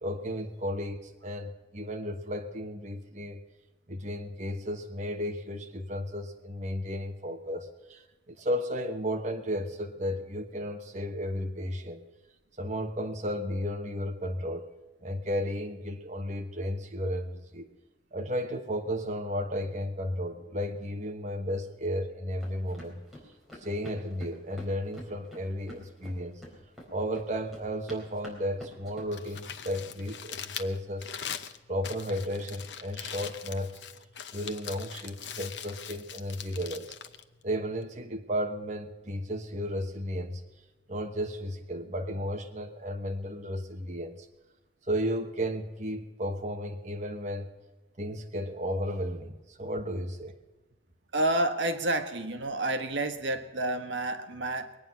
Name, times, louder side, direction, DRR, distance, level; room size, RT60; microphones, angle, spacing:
voice 1, 0.0-3.4 3.9-12.0 12.6-14.7 15.0-17.7 18.1-23.0 23.6-26.4 26.9-31.1 31.7-33.7 34.3-36.9 37.4-40.4 40.9-44.3 44.9-47.5 48.0-50.4, equal, 40° right, 3 dB, 1.2 m, -34 dB
sound 1, 22.4-29.0, left 1 dB, ahead, 4.2 m, -48 dB
Crumpling crinkling, 29.0-38.1, left 8 dB, 70° left, 0.9 m, -42 dB
voice 2, 51.1-54.8, right 1 dB, 80° right, 7 dB, 1.3 m, -29 dB
22.5 x 9.4 x 5.6 m, 1.2 s
head